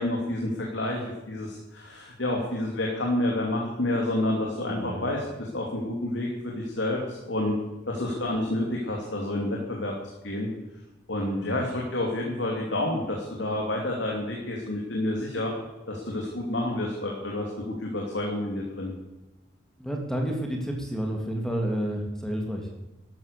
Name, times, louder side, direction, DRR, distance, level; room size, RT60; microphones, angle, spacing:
voice 1, 0.0-7.6 7.9-9.9 10.2-10.5 11.1-15.5 15.9-18.9, left 1 dB, 75° left, -1 dB, 2.9 m, -29 dB
voice 2, 4.7-5.1 11.2-11.7 19.8-22.7, equal, 5° left, 1 dB, 2.4 m, -30 dB
12.5 x 12.5 x 6.8 m, 1.0 s
head